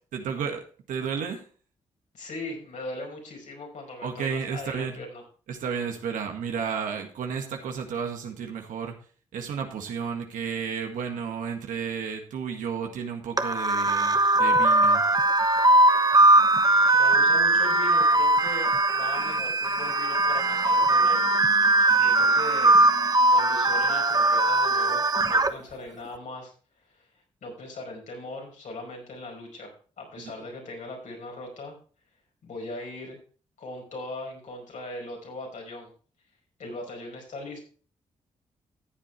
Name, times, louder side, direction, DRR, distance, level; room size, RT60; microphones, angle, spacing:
voice 1, 0.1-0.6 0.9-1.4 4.0-5.0 5.5-8.9 9.3-15.0, right 6 dB, 85° right, 4 dB, 1.8 m, -32 dB
voice 2, 2.1-5.2 16.9-21.2 21.9-22.8 23.3-26.5 26.9-27.1 27.4-31.8 32.4-33.2 33.6-35.9 36.6-37.6, left 2 dB, 70° left, 1 dB, 5.1 m, -39 dB
sound 1, 13.4-25.5, right 2 dB, 30° right, 1.1 m, -20 dB
14.0 x 7.9 x 3.2 m, 0.40 s
supercardioid pair, 55°, 13 cm